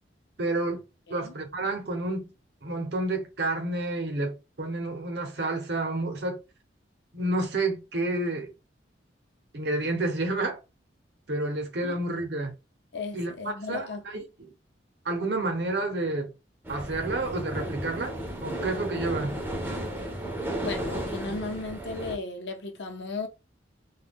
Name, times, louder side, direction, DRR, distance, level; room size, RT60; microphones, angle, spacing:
voice 1, 0.4-0.8 1.1-2.3 2.6-6.4 7.1-8.5 9.5-10.6 11.3-12.5 13.1-13.9 14.1-14.2 15.0-16.3 16.7-19.4, right 2 dB, 65° right, 0.8 m, -29 dB
voice 2, 11.8-12.2 12.9-14.3 20.6-23.3, left 3 dB, 70° left, 0.7 m, -36 dB
sound 1, 16.6-22.2, right 1 dB, 10° right, 0.5 m, -34 dB
2.3 x 2.2 x 3.4 m
head